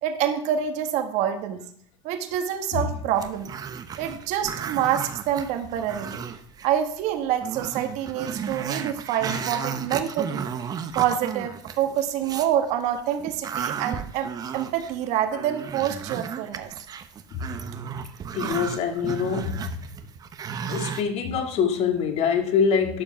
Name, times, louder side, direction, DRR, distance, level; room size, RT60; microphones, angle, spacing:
voice 1, 0.0-1.6 2.0-3.5 4.0-6.2 6.6-10.5 10.9-16.7, right 10 dB, 55° right, 7 dB, 1.6 m, -26 dB
Growling, 3.1-6.7 7.0-7.1 7.4-12.5 13.0-21.0, right 7 dB, 25° right, 0.8 m, -34 dB
voice 2, 18.3-19.7 20.7-23.0, left 6 dB, 45° left, 5 dB, 1.8 m, -25 dB
11.5 x 5.3 x 5.7 m, 0.64 s
supercardioid pair, 125°, 15 cm